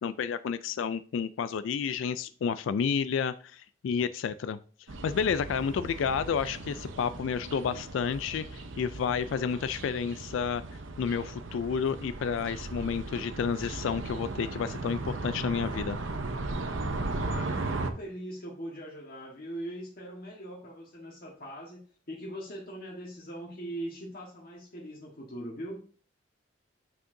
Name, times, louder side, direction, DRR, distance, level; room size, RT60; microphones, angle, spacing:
voice 1, 0.0-4.6 5.0-10.6 11.0-16.0, left 6 dB, 75° left, 14 dB, 0.3 m, -30 dB
sound 1, 4.9-17.9, right 2 dB, 75° right, 0.8 m, -37 dB
voice 2, 17.2-21.8 22.1-25.8, right 1 dB, 50° left, -3 dB, 1.4 m, -41 dB
8.4 x 6.3 x 2.6 m, 0.41 s
head